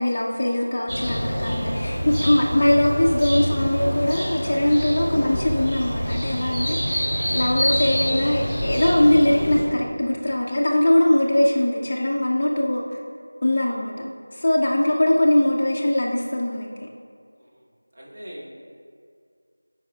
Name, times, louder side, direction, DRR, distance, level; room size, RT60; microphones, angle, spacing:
voice 1, 0.0-7.0 7.3-13.0 13.4-14.0 14.3-16.7, left 1 dB, 30° left, -3 dB, 0.4 m, -21 dB
sound 1, 0.9-9.6, equal, 10° right, 1.0 m, -26 dB
voice 2, 6.7-7.2 13.6-13.9 17.4-18.7, equal, 35° right, -4 dB, 0.9 m, -44 dB
9.9 x 4.7 x 2.3 m, 2.2 s
figure-of-eight pair, 175°, 0 cm